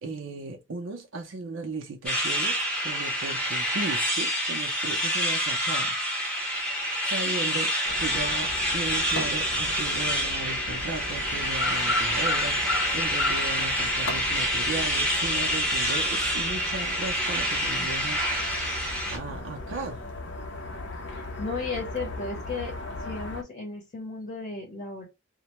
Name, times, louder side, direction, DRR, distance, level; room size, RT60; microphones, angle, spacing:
voice 1, 0.0-6.5 7.0-18.7 19.1-20.0, right 3 dB, 80° right, 0.5 m, -36 dB
sound 1, 2.1-19.2, equal, 5° left, 0.8 m, -27 dB
sound 2, 7.8-23.4, left 2 dB, 75° left, 0.5 m, -36 dB
voice 2, 21.1-22.7 23.0-25.1, left 3 dB, 40° left, 0.7 m, -35 dB
2.1 x 2.1 x 2.8 m
head